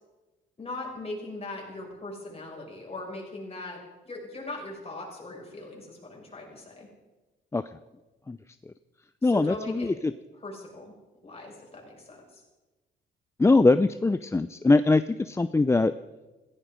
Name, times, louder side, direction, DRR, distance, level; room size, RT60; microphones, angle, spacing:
voice 1, 0.6-3.8 4.0-6.9 9.2-9.9 10.4-10.9 11.2-12.4, left 2 dB, 30° left, -1 dB, 6.4 m, -39 dB
voice 2, 9.2-9.9 13.4-15.9, left 3 dB, 15° left, 12 dB, 0.5 m, -22 dB
17.0 x 15.5 x 5.1 m, 1.1 s
cardioid pair, 90°, 20 cm